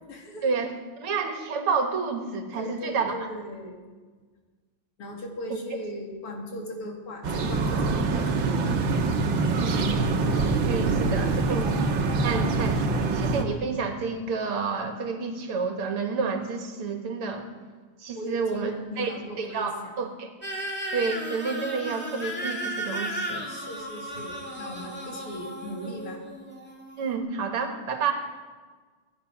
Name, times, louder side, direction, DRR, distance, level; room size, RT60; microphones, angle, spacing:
voice 1, 0.1-0.5 2.6-3.8 5.0-8.8 11.5-11.6 18.1-19.9 23.5-26.2, left 1 dB, 90° left, 1 dB, 3.3 m, -38 dB
voice 2, 1.0-3.2 9.6-10.1 10.7-11.7 12.2-12.8 13.1-17.5 18.0-18.7 19.0-19.7 20.0-20.3 20.9-23.5 27.0-28.1, right 5 dB, 80° right, 5 dB, 2.5 m, -29 dB
sound 1, 7.2-13.4, right 3 dB, 65° right, 1.9 m, -25 dB
sound 2, 20.4-27.1, right 1 dB, 5° left, 2.0 m, -35 dB
24.5 x 9.7 x 6.0 m, 1.4 s
omnidirectional pair, 2.4 m